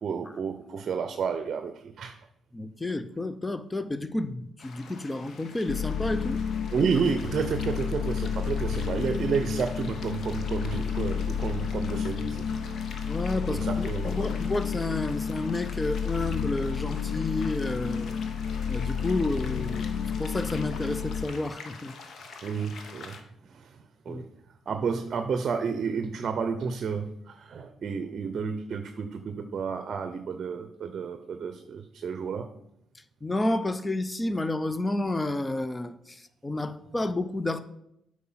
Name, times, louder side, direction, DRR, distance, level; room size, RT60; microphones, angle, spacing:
voice 1, 0.0-2.2 6.7-12.8 13.5-14.5 22.4-23.2 23.4-24.3 24.7-32.5, right 6 dB, 55° right, 8 dB, 0.7 m, -31 dB
voice 2, 2.5-6.4 13.0-18.1 18.7-19.8 20.2-21.9 24.1-24.2 33.2-37.6, left 2 dB, 15° left, 13 dB, 0.6 m, -30 dB
sound 1, 4.6-23.2, left 4 dB, 60° left, 1.1 m, -46 dB
sound 2, 5.7-21.3, left 7 dB, 80° left, 0.4 m, -31 dB
8.4 x 4.8 x 5.7 m, 0.77 s
cardioid pair, 90°, 0 cm